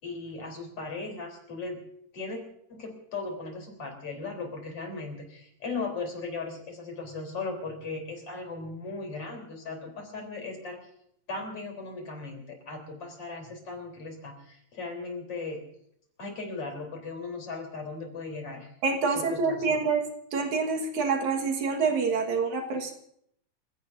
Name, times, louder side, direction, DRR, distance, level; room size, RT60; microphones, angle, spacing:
voice 1, 0.0-1.8 2.1-2.4 2.7-10.8 11.3-15.6 16.2-18.7 19.1-19.8, left 3 dB, 45° left, 2 dB, 4.7 m, -37 dB
voice 2, 18.8-20.0 20.3-22.9, right 4 dB, 70° right, 3 dB, 3.0 m, -27 dB
29.0 x 16.5 x 2.7 m, 0.70 s
omnidirectional pair, 3.6 m